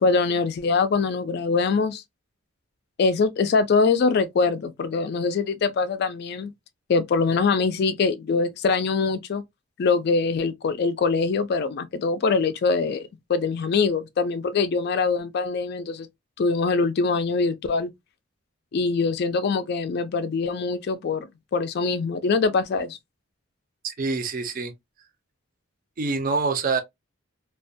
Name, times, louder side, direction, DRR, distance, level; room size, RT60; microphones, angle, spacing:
voice 1, 0.0-2.0 3.0-6.5 6.9-9.4 9.8-16.1 16.4-17.9 18.7-23.0, left 4 dB, 50° left, 0.3 m, -23 dB
voice 2, 23.8-24.7 26.0-26.8, right 4 dB, 40° right, 0.5 m, -25 dB
2.3 x 2.1 x 2.5 m
head